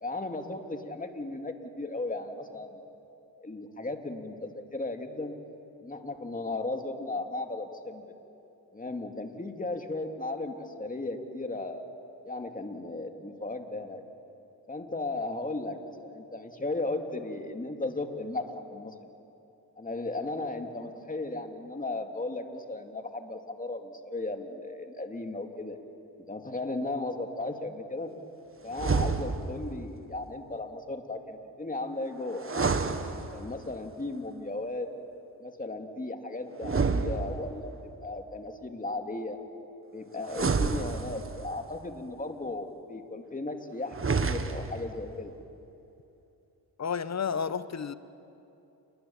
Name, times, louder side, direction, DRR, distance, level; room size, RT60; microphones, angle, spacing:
voice 1, 0.0-2.8 3.4-5.3 5.8-8.0 8.7-11.8 12.3-14.0 14.7-18.9 19.8-25.8 26.3-28.1 28.6-32.7 33.3-34.9 35.4-37.7 38.0-39.4 39.9-45.4, left 2 dB, 20° left, 2.6 m, -36 dB
sound 1, 28.7-29.7 32.4-33.7 36.6-37.8 40.3-41.5 43.9-44.9, right 4 dB, 30° right, 1.6 m, -29 dB
voice 2, 46.8-47.9, left 6 dB, 40° left, 1.0 m, -31 dB
29.5 x 21.0 x 7.3 m
cardioid pair, 65°, 41 cm